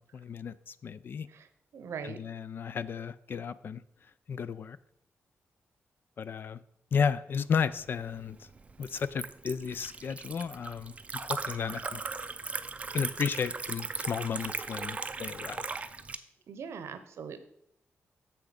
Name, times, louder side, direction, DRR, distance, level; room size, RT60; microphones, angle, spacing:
voice 1, 0.0-1.3 2.0-3.8 4.3-4.8 6.2-6.6 6.9-8.5 8.8-12.0 12.9-15.6, left 6 dB, 50° left, 16 dB, 0.4 m, -33 dB
voice 2, 1.7-2.2 16.5-17.4, right 6 dB, 75° right, 10 dB, 0.8 m, -41 dB
Liquid, 7.8-16.2, right 4 dB, 30° right, 0.4 m, -38 dB
7.0 x 6.0 x 5.0 m, 0.73 s
wide cardioid pair, 135°, 5 cm